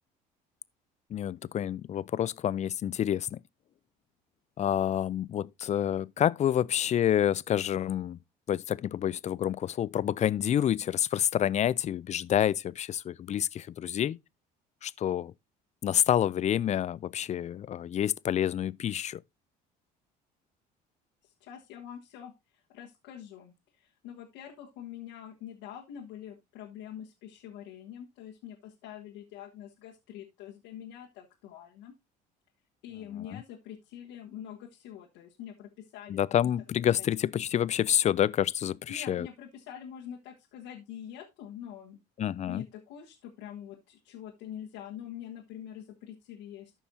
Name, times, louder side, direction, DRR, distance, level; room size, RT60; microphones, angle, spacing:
voice 1, 1.1-3.4 4.6-8.2 8.5-14.2 14.8-15.3 15.8-19.2 33.3-33.4 36.1-39.3 42.2-42.6, left 10 dB, 35° left, 0.4 m, -28 dB
voice 2, 21.2-22.3 22.7-31.9 32.8-36.5 38.9-42.0 42.5-46.7, left 10 dB, 75° left, 1.4 m, -45 dB
13.5 x 5.5 x 2.7 m
hypercardioid pair, 70°, 20 cm